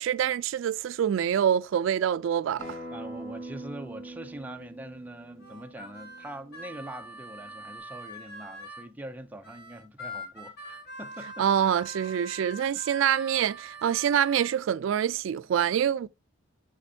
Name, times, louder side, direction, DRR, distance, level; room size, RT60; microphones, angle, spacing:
voice 1, 0.0-2.8 11.4-16.1, right 9 dB, 70° right, 0.3 m, -26 dB
Acoustic guitar, 2.6-7.8, right 1 dB, 40° left, 3.4 m, -43 dB
voice 2, 2.9-11.5, right 1 dB, 10° right, 0.5 m, -43 dB
Harmonica, 5.4-8.9 9.4-14.5, equal, 55° left, 1.8 m, -43 dB
6.7 x 6.5 x 2.7 m
head